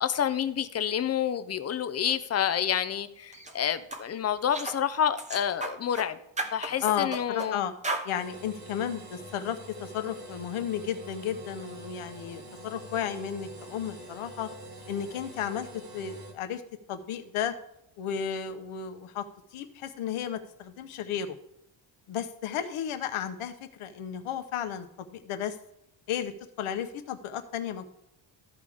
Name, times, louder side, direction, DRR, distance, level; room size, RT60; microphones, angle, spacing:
voice 1, 0.0-6.2 6.5-7.6, left 9 dB, 30° left, 0.5 m, -28 dB
sound 1, 3.3-3.5 3.9-4.0 4.5-4.8 5.2-6.1 6.4-7.5 7.8-8.1, right 2 dB, 15° right, 0.8 m, -34 dB
voice 2, 6.8-7.7 8.0-14.5 14.9-16.6 16.9-17.5 18.0-19.3 19.5-21.4 22.1-25.6 26.1-26.3 26.6-27.8, left 9 dB, 80° left, 1.0 m, -33 dB
sound 2, 8.1-16.3, right 1 dB, 45° right, 2.1 m, -45 dB
14.0 x 5.0 x 3.5 m
cardioid pair, 140°, 49 cm